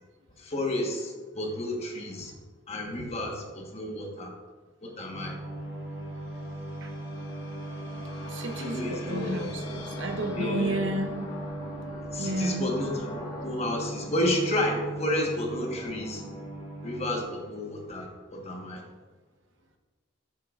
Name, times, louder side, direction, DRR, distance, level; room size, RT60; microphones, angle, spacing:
voice 1, 0.4-2.3 2.7-4.3 4.8-5.4 8.6-9.5 10.3-10.8 12.1-16.2 16.8-18.8, left 1 dB, 30° left, 1 dB, 1.2 m, -31 dB
sound 1, 5.1-17.2, right 1 dB, 5° right, 2.8 m, -39 dB
sound 2, 5.3-15.5, equal, 70° left, 1.4 m, -43 dB
voice 2, 8.3-11.2 12.2-12.7, right 1 dB, 65° right, 4 dB, 0.9 m, -31 dB
12.5 x 7.5 x 2.5 m, 1.4 s
head